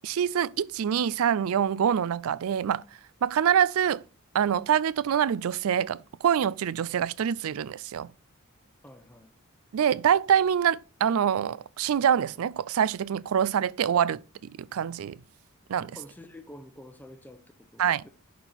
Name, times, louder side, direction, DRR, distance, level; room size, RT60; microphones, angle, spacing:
voice 1, 0.0-2.8 3.2-4.0 4.3-8.1 9.7-15.2 15.7-16.0 17.8-18.0, right 8 dB, 65° right, 0.3 m, -25 dB
voice 2, 8.8-9.3 15.9-18.1, left 1 dB, 10° left, 0.8 m, -48 dB
11.0 x 4.5 x 4.0 m
head